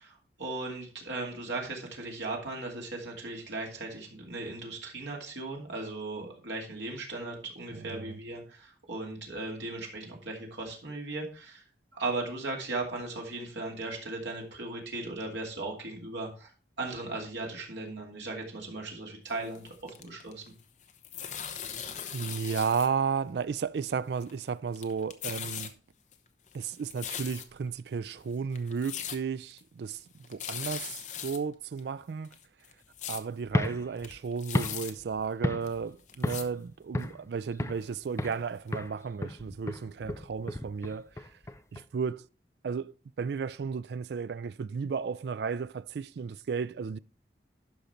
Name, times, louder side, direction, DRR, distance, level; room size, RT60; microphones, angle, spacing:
voice 1, 0.0-11.6 11.9-16.5 16.8-20.4, right 2 dB, 85° right, 2.6 m, -37 dB
voice 2, 7.7-8.2 22.1-25.7 26.5-30.0 30.3-32.3 33.1-41.2 41.7-42.3 42.6-47.0, right 6 dB, 70° right, 0.4 m, -33 dB
sound 1, 19.3-20.5 20.8-22.9 23.2-23.3 24.0-24.5 24.7-25.7 26.1-27.7 28.2-28.3 28.5-29.2 29.5-29.6 30.0-30.1 30.2-31.4 31.8-31.9 32.2-33.2 33.6-33.7 34.0-34.9 35.6-35.7 36.1-36.4 37.0-37.1 37.8-37.9 38.3-38.4 38.7-38.8, left 9 dB, 45° left, 0.9 m, -39 dB
sound 2, 33.4-35.9 36.2-36.6 36.9-37.9 38.2-38.5 38.7-41.8, left 1 dB, 15° left, 0.5 m, -34 dB
12.0 x 5.3 x 4.3 m
head